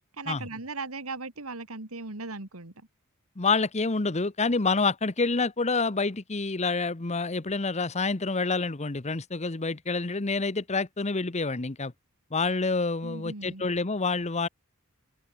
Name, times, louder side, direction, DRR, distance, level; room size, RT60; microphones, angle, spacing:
voice 1, 0.2-2.7 13.0-13.6, right 3 dB, 85° right, 2.8 m, -37 dB
voice 2, 3.4-11.9 12.3-14.5, left 3 dB, 30° left, 1.0 m, -27 dB
open air
head